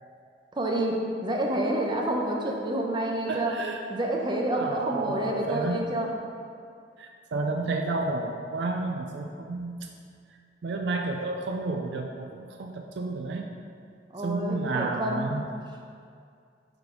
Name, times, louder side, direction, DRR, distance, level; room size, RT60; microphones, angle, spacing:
voice 1, 0.5-3.6 3.9-6.1 14.1-15.4, right 1 dB, 25° right, 0 dB, 0.7 m, -28 dB
voice 2, 3.3-3.8 4.6-5.8 7.0-9.9 10.6-13.5 14.2-15.5, right 3 dB, 70° right, 3 dB, 0.4 m, -31 dB
5.8 x 3.9 x 5.0 m, 2.3 s
head